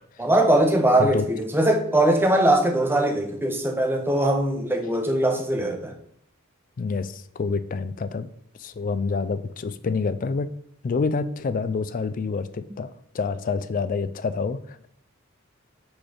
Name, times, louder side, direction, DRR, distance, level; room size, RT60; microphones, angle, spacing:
voice 1, 0.2-5.9, right 1 dB, 10° right, 4 dB, 0.7 m, -21 dB
voice 2, 6.8-8.3 8.6-10.5 10.8-12.9 13.1-14.8, left 4 dB, 40° left, 14 dB, 0.3 m, -27 dB
6.1 x 3.3 x 5.0 m, 0.68 s
head